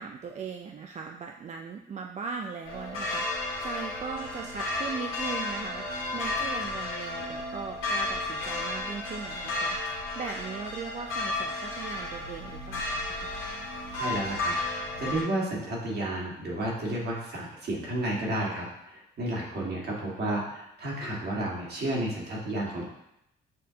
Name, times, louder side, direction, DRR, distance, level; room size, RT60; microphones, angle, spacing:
voice 1, 0.0-13.3, right 5 dB, 35° right, 2 dB, 0.4 m, -39 dB
sound 1, 2.7-15.2, left 2 dB, 90° left, 1.6 m, -33 dB
voice 2, 14.0-22.8, right 1 dB, 55° right, -4 dB, 1.7 m, -32 dB
7.5 x 2.5 x 2.8 m, 0.82 s
cardioid pair, 90°, 20 cm